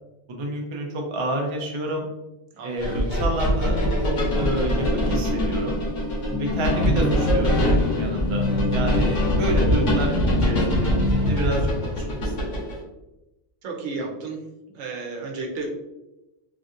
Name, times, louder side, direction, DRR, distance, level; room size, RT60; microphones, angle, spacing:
voice 1, 0.3-2.1 2.6-3.8 4.0-5.8 6.4-12.5, right 1 dB, 40° right, 0 dB, 0.4 m, -30 dB
voice 2, 2.5-3.0 13.6-14.4 14.7-15.7, right 3 dB, 75° right, 1 dB, 1.0 m, -32 dB
sound 1, 2.8-12.8, equal, 75° left, 1.4 m, -23 dB
sound 2, 6.3-11.3, left 2 dB, 35° left, 0.5 m, -27 dB
3.3 x 2.6 x 2.5 m, 0.97 s
omnidirectional pair, 1.3 m